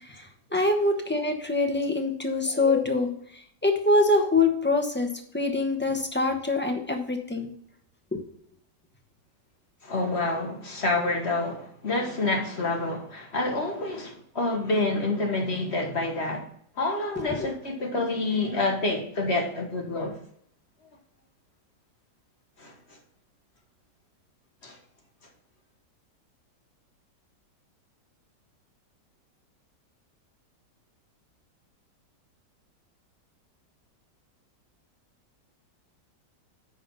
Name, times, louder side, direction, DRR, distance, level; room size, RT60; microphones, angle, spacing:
voice 1, 0.1-3.1 3.6-5.1 5.3-7.5 8.1-8.2 17.3-17.5, left 2 dB, 10° left, 0.7 m, -24 dB
voice 2, 9.8-16.4 16.8-20.2 22.6-22.7 24.6-24.8, left 2 dB, 40° left, 1.5 m, -28 dB
9.5 x 4.2 x 5.5 m
omnidirectional pair, 1.9 m